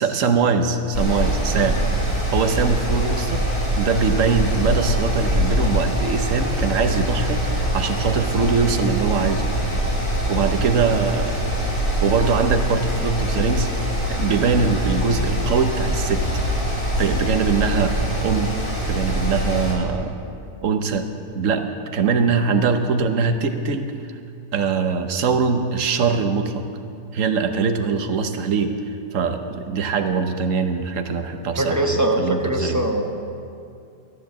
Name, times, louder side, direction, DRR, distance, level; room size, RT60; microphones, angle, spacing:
voice 1, 0.0-1.8 2.3-3.4 3.8-9.5 10.3-11.4 12.0-13.7 14.1-16.2 17.0-17.9 18.2-18.5 18.9-20.1 20.6-21.1 21.3-24.2 24.5-26.6 27.1-28.7 29.1-32.8, right 5 dB, 55° right, 6 dB, 1.2 m, -22 dB
Mechanical fan, 0.9-19.7, right 1 dB, 35° left, 4.6 m, -23 dB
voice 2, 31.6-33.0, right 1 dB, 15° right, 3 dB, 0.8 m, -22 dB
13.0 x 10.5 x 7.4 m, 2.5 s
omnidirectional pair, 1.7 m